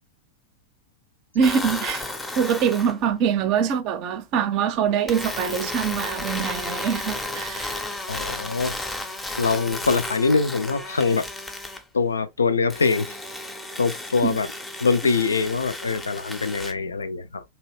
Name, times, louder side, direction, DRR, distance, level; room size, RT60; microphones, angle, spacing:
voice 1, 1.3-2.0 2.4-7.7 14.2-14.4, right 7 dB, 40° right, 0.5 m, -24 dB
sound 1, 1.4-3.0 5.1-11.8 12.7-16.7, left 2 dB, 10° left, 0.5 m, -33 dB
voice 2, 8.1-8.7 9.4-11.2 11.9-13.2 13.8-14.5 14.8-17.4, left 4 dB, 75° left, 0.3 m, -23 dB
2.8 x 2.7 x 3.0 m
figure-of-eight pair, 90°, 0 cm